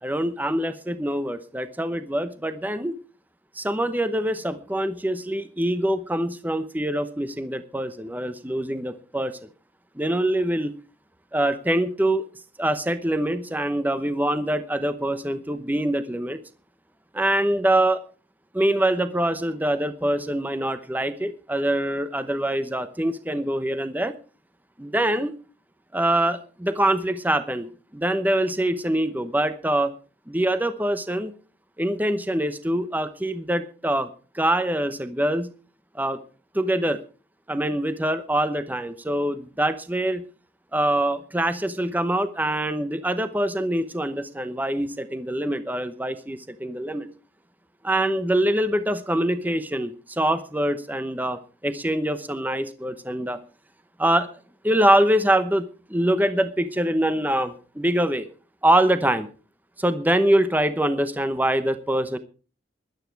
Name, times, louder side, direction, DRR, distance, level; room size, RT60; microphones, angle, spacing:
voice 1, 0.0-2.9 3.5-9.4 10.0-10.7 11.3-12.3 12.6-16.4 17.1-18.0 18.5-24.1 24.8-25.3 25.9-29.9 30.3-31.3 31.8-34.1 34.3-35.5 35.9-36.2 36.5-37.0 37.5-40.2 40.7-47.1 47.8-53.4 54.0-54.3 54.6-58.3 58.6-59.3 59.8-62.2, right 1 dB, 10° right, 10 dB, 0.9 m, -24 dB
17.0 x 11.5 x 4.7 m, 0.37 s
head